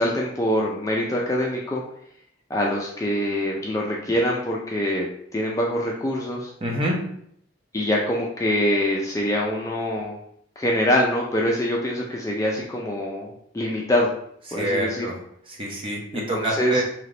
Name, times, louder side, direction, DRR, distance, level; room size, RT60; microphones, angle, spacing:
voice 1, 0.0-1.8 2.5-5.1 5.3-6.5 7.7-10.2 10.6-14.1 14.5-15.1 16.1-16.8, left 1 dB, 15° left, -2 dB, 0.4 m, -24 dB
voice 2, 6.6-7.0 14.5-15.1 15.5-16.8, right 1 dB, 25° right, -2 dB, 0.8 m, -26 dB
3.3 x 2.9 x 3.8 m, 0.68 s
head